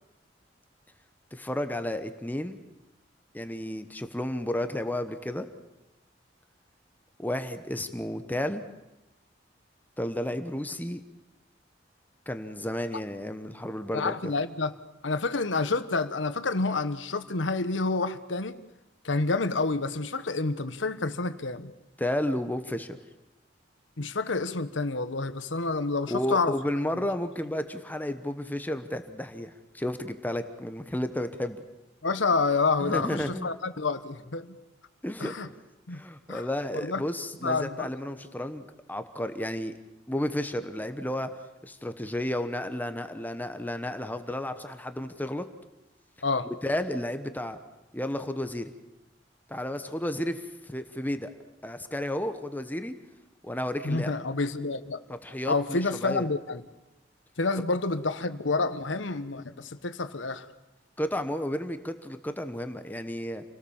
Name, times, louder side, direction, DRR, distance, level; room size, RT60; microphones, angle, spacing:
voice 1, 1.3-2.6 3.3-5.5 7.2-8.6 10.0-11.0 12.3-14.3 22.0-23.0 26.1-31.6 32.8-33.5 35.0-35.3 35.9-39.7 40.1-41.3 41.6-45.5 46.4-47.6 47.9-48.7 49.5-51.3 51.6-52.9 53.4-54.1 55.1-56.3 61.0-63.4, left 1 dB, 10° left, 9 dB, 1.0 m, -32 dB
voice 2, 13.9-14.7 15.0-18.6 19.0-21.7 24.0-26.6 32.0-34.6 35.2-35.5 35.9-36.0 36.3-36.5 36.7-37.0 37.4-37.9 46.2-46.5 53.8-55.0 55.5-56.6 57.4-60.5, left 3 dB, 85° left, 11 dB, 1.2 m, -28 dB
28.0 x 18.0 x 7.2 m, 0.98 s
head